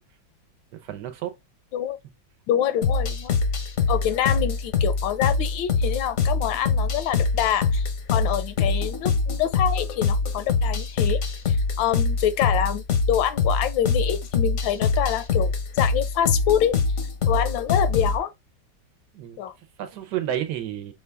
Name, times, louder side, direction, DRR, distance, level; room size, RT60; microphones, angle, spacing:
voice 1, 0.7-1.3 19.1-20.9, right 11 dB, 70° right, 1.1 m, -31 dB
voice 2, 2.5-3.3 3.9-16.8 17.3-18.3 19.4-19.5, left 10 dB, 80° left, 1.3 m, -26 dB
sound 1, 2.8-18.2, left 4 dB, 60° left, 0.8 m, -24 dB
5.7 x 2.3 x 3.3 m
omnidirectional pair, 2.1 m